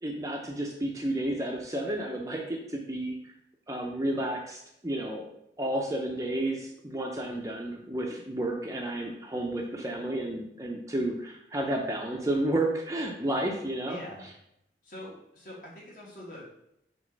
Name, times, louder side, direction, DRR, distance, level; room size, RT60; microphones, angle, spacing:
voice 1, 0.0-3.3 3.7-5.2 5.6-14.0, right 1 dB, 20° right, 1 dB, 0.6 m, -31 dB
voice 2, 13.9-14.3 14.8-16.4, left 1 dB, 50° left, -5 dB, 2.3 m, -44 dB
6.4 x 3.0 x 5.2 m, 0.78 s
head